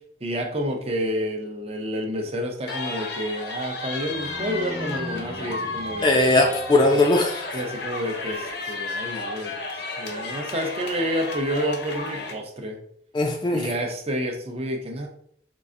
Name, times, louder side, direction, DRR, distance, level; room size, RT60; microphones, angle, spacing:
voice 1, 0.2-6.3 6.8-7.0 7.5-9.6 10.0-12.8 13.5-15.1, equal, 35° right, 2 dB, 0.6 m, -29 dB
sound 1, 2.7-12.3, left 3 dB, 65° left, 0.6 m, -33 dB
sound 2, 4.0-7.0, left 1 dB, ahead, 0.8 m, -39 dB
voice 2, 6.0-7.4 13.1-13.6, left 2 dB, 25° left, 2 dB, 0.4 m, -19 dB
4.6 x 2.4 x 2.5 m, 0.65 s
head